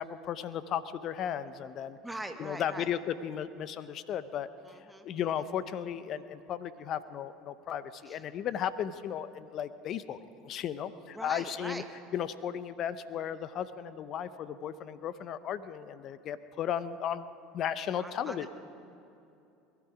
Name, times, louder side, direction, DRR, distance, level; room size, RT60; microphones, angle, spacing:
voice 1, 0.0-2.0 2.4-4.5 5.0-10.2 10.4-11.8 12.1-17.3 17.5-18.5, left 9 dB, 50° left, 14 dB, 0.7 m, -35 dB
voice 2, 2.0-2.9 4.6-5.1 8.1-8.2 11.1-11.8 18.0-18.5, right 1 dB, 5° right, 5 dB, 1.5 m, -42 dB
20.5 x 12.5 x 5.0 m, 2.8 s
hypercardioid pair, 85°, 0 cm